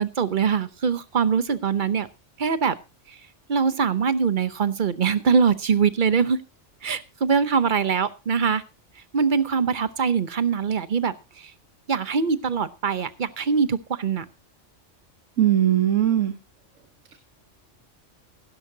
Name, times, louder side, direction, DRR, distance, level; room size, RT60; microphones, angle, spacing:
voice 1, 0.0-2.1 2.4-2.7 3.5-6.4 6.8-8.6 9.1-11.5 11.9-14.2, right 6 dB, 45° right, 13 dB, 0.9 m, -23 dB
voice 2, 15.4-16.3, right 11 dB, 90° right, 8 dB, 1.4 m, -19 dB
15.5 x 12.5 x 2.8 m, 0.28 s
omnidirectional pair, 1.3 m